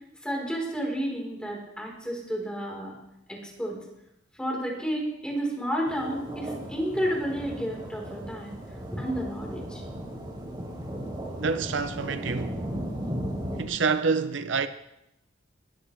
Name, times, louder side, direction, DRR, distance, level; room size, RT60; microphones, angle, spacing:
voice 1, 0.2-3.0 3.3-3.8 4.4-8.5 8.9-9.8, equal, 5° left, 4.6 m, -31 dB
sound 1, 5.9-13.6, equal, 25° right, 3.8 m, -36 dB
voice 2, 11.4-12.6 13.6-14.7, right 5 dB, 70° right, 0.7 m, -27 dB
21.0 x 14.0 x 3.5 m
head